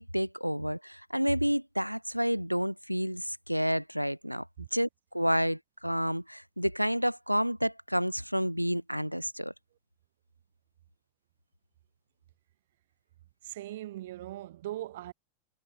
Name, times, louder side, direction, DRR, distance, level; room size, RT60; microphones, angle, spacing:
voice 1, 0.0-4.5 4.7-4.9 5.1-9.5, equal, 90° right, 1.5 m, -30 dB
voice 2, 13.4-15.1, right 14 dB, 55° right, 5.0 m, -39 dB
figure-of-eight pair, 90°, 0 cm